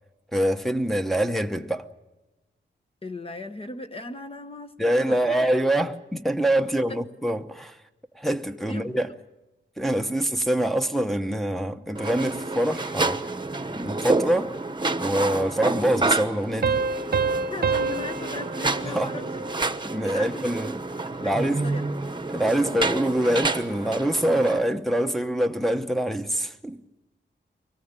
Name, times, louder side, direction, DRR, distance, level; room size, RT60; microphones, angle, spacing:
voice 1, 0.3-1.9 4.8-7.8 8.1-9.1 9.8-13.2 13.7-14.6 15.0-16.8 18.8-19.2 19.8-20.8 21.2-21.6 22.3-26.8, right 1 dB, ahead, 0.9 m, -25 dB
voice 2, 3.0-5.4 6.9-7.0 8.4-8.9 17.5-19.3 20.0-20.5 21.1-21.9, left 2 dB, 30° left, 1.0 m, -38 dB
sound 1, 11.9-24.6, right 3 dB, 25° right, 1.0 m, -29 dB
sound 2, 16.6-19.9, right 4 dB, 55° right, 0.8 m, -28 dB
24.0 x 18.5 x 8.9 m
wide cardioid pair, 120°, 20 cm